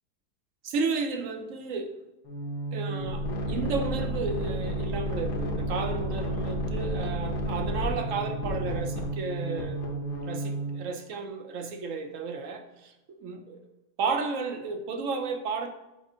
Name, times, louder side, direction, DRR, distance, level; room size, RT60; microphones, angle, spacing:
voice 1, 0.6-1.9 2.7-9.8 10.2-13.6 14.0-15.7, right 4 dB, 65° right, 0.8 m, -33 dB
sound 1, 2.3-10.9, right 1 dB, 75° left, 1.5 m, -31 dB
6.9 x 2.6 x 5.4 m
omnidirectional pair, 1.8 m